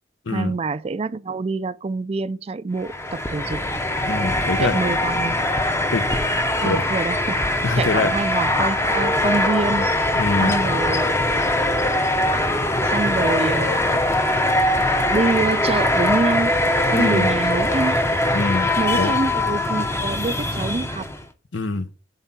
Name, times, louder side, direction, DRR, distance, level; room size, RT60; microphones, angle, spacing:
voice 1, 0.3-3.6 4.6-5.4 6.6-7.4 7.8-9.9 10.4-11.3 12.9-14.0 15.1-16.5 16.9-18.0 18.8-21.1, right 3 dB, 30° right, 0.4 m, -25 dB
sound 1, 2.8-21.2, left 1 dB, 15° left, 0.7 m, -21 dB
voice 2, 4.1-4.8 5.9-6.1 6.6-6.8 7.6-8.2 10.1-10.5 16.9-17.3 18.3-19.2 21.5-21.9, left 3 dB, 80° left, 0.9 m, -24 dB
8.0 x 3.8 x 5.8 m
head